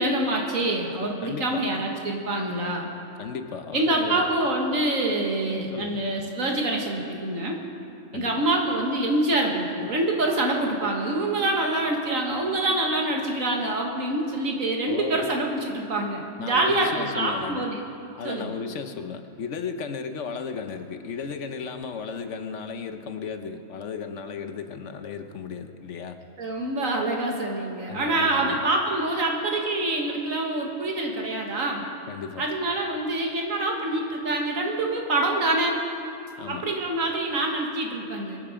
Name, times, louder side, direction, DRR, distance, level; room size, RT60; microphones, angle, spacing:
voice 1, 0.0-2.9 3.7-7.6 8.1-17.8 18.2-18.6 26.4-31.8 32.4-35.8 36.5-38.4, right 2 dB, 90° right, 0 dB, 2.2 m, -26 dB
voice 2, 1.2-1.6 3.2-4.3 5.7-6.0 8.1-8.5 14.8-15.3 16.4-17.7 18.1-26.2 27.9-28.6 32.1-32.5 36.4-36.7, left 6 dB, 70° left, 8 dB, 1.2 m, -35 dB
23.0 x 9.0 x 5.1 m, 2.6 s
omnidirectional pair, 1.3 m